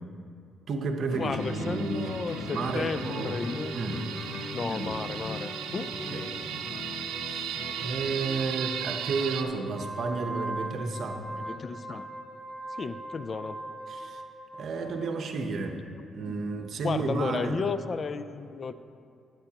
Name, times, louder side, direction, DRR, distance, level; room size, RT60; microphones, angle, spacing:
voice 1, 0.7-2.1 2.5-3.4 3.7-4.0 4.8-5.0 6.0-6.2 7.3-11.2 13.9-14.2 14.6-15.8 16.1-17.6, right 4 dB, 60° right, 5 dB, 0.9 m, -32 dB
Guitar, 1.1-8.6, left 3 dB, 65° left, 0.9 m, -40 dB
voice 2, 1.2-4.2 4.5-5.9 7.0-7.1 11.3-12.1 12.7-13.6 16.2-16.4 16.8-18.7, left 4 dB, 40° left, 12 dB, 0.3 m, -33 dB
sound 1, 1.4-9.4, right 8 dB, 90° right, 0.5 m, -37 dB
Wind instrument woodwind instrument, 9.6-14.9, right 2 dB, 20° right, 2.4 m, -39 dB
13.0 x 9.0 x 2.9 m, 2.4 s
cardioid pair, 90°, 0 cm